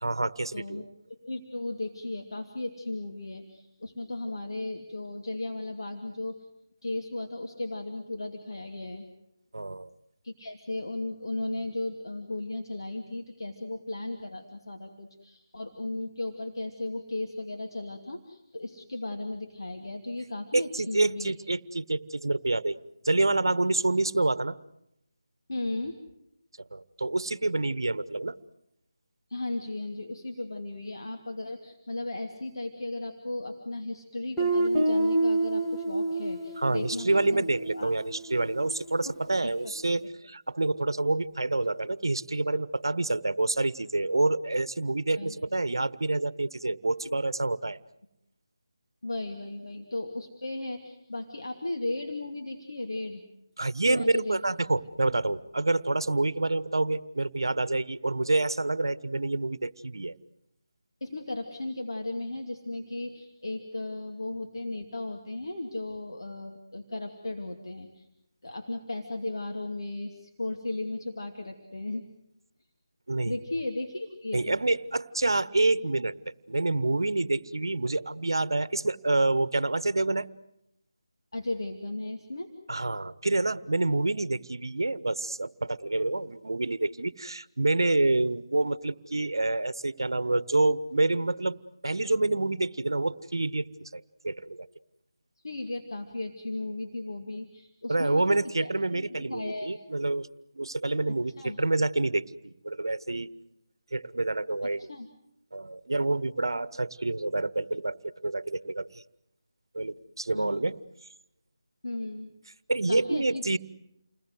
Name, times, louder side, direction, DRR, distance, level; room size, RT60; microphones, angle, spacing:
voice 1, 0.0-0.8 9.5-9.9 20.5-22.8 23.0-24.6 26.7-28.4 36.6-47.8 53.6-60.2 73.1-73.3 74.3-76.1 76.5-80.3 82.7-94.7 97.9-100.3 100.5-103.3 103.9-104.9 105.5-108.9 109.7-110.8 112.7-113.6, right 2 dB, 70° right, 18 dB, 1.1 m, -27 dB
voice 2, 0.5-0.8 1.1-6.5 6.8-9.1 10.2-21.3 25.5-26.0 29.3-37.4 37.7-37.9 39.4-39.5 45.2-45.4 49.0-53.2 53.8-54.4 61.0-68.1 68.4-72.1 73.2-74.6 81.3-82.5 95.4-99.8 101.1-101.6 104.8-105.1 110.3-110.6 111.8-112.3 112.9-113.6, left 2 dB, 65° left, 3 dB, 2.7 m, -36 dB
Guitar, 34.4-39.0, right 2 dB, 5° left, 2.1 m, -29 dB
29.5 x 21.0 x 8.0 m, 0.82 s
figure-of-eight pair, 160°, 2 cm